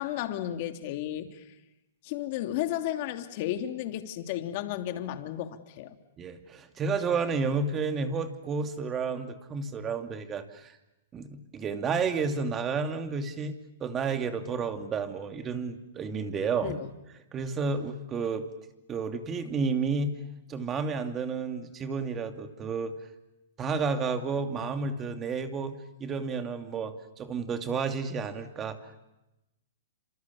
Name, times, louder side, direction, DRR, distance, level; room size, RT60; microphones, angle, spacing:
voice 1, 0.0-1.4 2.0-6.0 16.6-16.9, left 12 dB, 50° left, 2.9 m, -33 dB
voice 2, 6.2-10.7 11.1-16.7 17.3-18.5 18.9-20.1 20.5-22.9 23.6-28.8, right 5 dB, 20° right, 2.6 m, -31 dB
29.5 x 27.0 x 7.1 m
hypercardioid pair, 135°, 0 cm